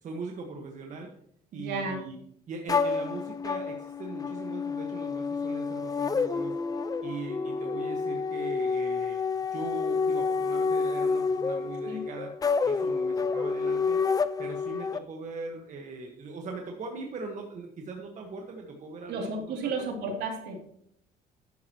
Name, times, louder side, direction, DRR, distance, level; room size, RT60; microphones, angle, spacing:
voice 1, 0.0-1.1 1.5-2.2 2.5-6.6 7.0-9.2 9.5-12.3 12.6-14.0 14.4-19.7, right 3 dB, 45° right, 1 dB, 1.6 m, -40 dB
voice 2, 1.5-2.0 11.8-12.0 19.1-20.6, right 3 dB, 75° right, 1 dB, 3.0 m, -33 dB
sound 1, 2.7-15.0, left 4 dB, 20° left, 0.4 m, -29 dB
11.5 x 10.0 x 3.1 m, 0.68 s
cardioid pair, 110°, 17 cm